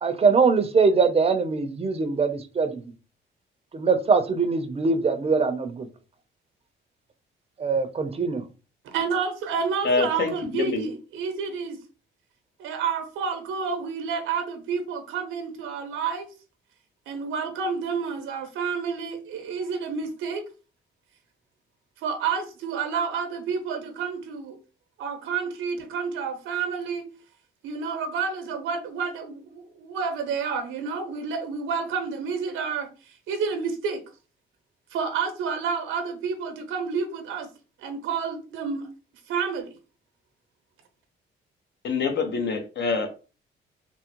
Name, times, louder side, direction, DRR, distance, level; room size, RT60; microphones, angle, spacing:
voice 1, 0.0-2.8 3.7-5.9 7.6-8.4, right 4 dB, 30° right, 0.5 m, -22 dB
voice 2, 8.8-11.8 12.6-16.3 17.1-20.5 22.0-24.6 25.0-27.1 27.6-34.0 34.9-37.5 37.8-38.9 39.3-39.7, right 5 dB, 90° right, 0.7 m, -29 dB
voice 3, 9.8-10.8 41.8-43.2, left 4 dB, 60° left, 0.8 m, -26 dB
3.5 x 2.0 x 2.9 m
cardioid pair, 90°, 20 cm